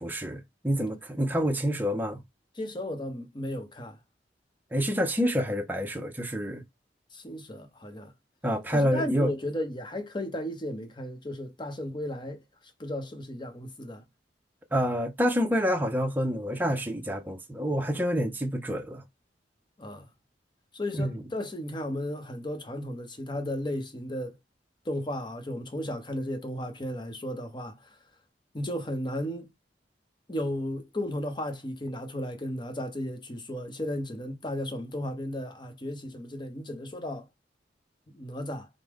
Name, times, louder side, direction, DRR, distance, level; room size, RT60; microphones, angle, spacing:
voice 1, 0.0-2.2 4.7-6.6 8.4-9.3 14.7-19.0 20.9-21.2, equal, 10° right, 0.5 m, -27 dB
voice 2, 2.6-4.0 7.1-8.1 8.7-12.4 12.8-14.0 19.8-20.1 20.7-24.4 24.9-27.8 28.5-29.5 30.3-37.3 38.1-38.7, left 1 dB, 25° left, 0.8 m, -34 dB
4.7 x 2.1 x 3.5 m
head